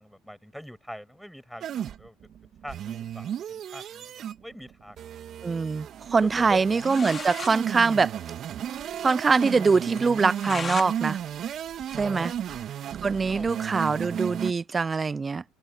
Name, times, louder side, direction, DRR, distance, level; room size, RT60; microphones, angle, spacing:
voice 1, 0.0-2.2 2.4-5.3 6.2-6.6 12.0-12.4 13.3-13.5, equal, ahead, 6.6 m, -43 dB
Angry Wobbles, 1.6-14.5, right 10 dB, 50° right, 1.8 m, -34 dB
voice 2, 5.4-8.1 9.0-11.2 12.0-12.3 13.0-15.4, right 4 dB, 25° right, 0.3 m, -23 dB
sound 1, 6.8-7.6 7.9-8.0 8.2-8.3 8.8-8.9 9.2-9.3 10.0-10.9 11.3-12.7, left 5 dB, 30° left, 4.3 m, -37 dB
supercardioid pair, 90°, 0 cm